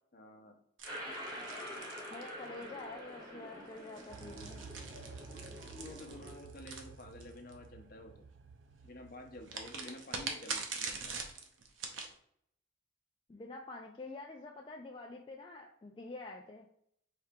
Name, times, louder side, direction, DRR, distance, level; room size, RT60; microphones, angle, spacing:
voice 1, 0.1-0.6 5.7-8.3 8.8-11.2, left 1 dB, 50° left, 3 dB, 0.7 m, -50 dB
sound 1, 0.8-6.3, equal, 25° right, 1.6 m, -46 dB
sound 2, 0.8-2.8 3.8-7.5 9.5-12.1, right 5 dB, 85° right, 0.7 m, -43 dB
voice 2, 2.1-4.6 13.3-16.7, left 2 dB, 25° left, 0 dB, 0.3 m, -47 dB
sound 3, 4.1-9.9, right 5 dB, 60° right, 0.4 m, -53 dB
4.5 x 2.8 x 3.6 m, 0.70 s
head